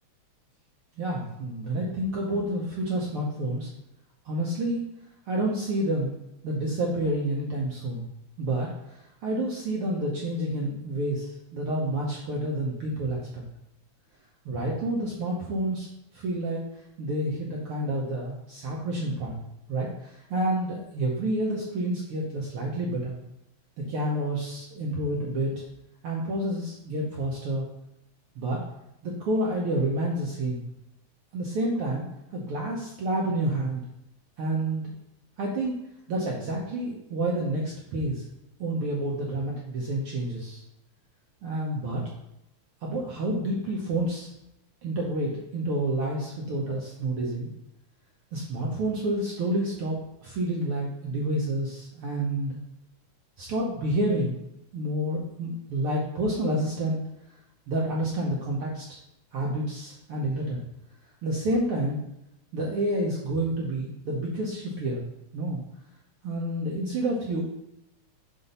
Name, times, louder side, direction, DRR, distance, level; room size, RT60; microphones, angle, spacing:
voice 1, 1.0-3.7 4.2-4.8 5.3-6.1 6.4-8.0 8.4-13.4 14.4-15.9 16.1-16.6 17.0-19.4 19.7-23.2 23.9-25.6 26.0-27.6 28.4-28.6 29.0-30.6 31.3-32.0 32.3-33.8 34.4-34.8 35.4-35.8 36.1-38.2 38.6-40.6 41.4-42.0 42.8-44.3 44.8-47.5 48.3-52.6 53.4-54.4 54.7-57.0 57.7-58.9 59.3-60.6 61.2-62.0 62.5-65.0 65.3-65.6 66.2-67.4, right 1 dB, 70° right, -3 dB, 1.3 m, -29 dB
5.6 x 4.0 x 5.4 m, 0.86 s
omnidirectional pair, 3.4 m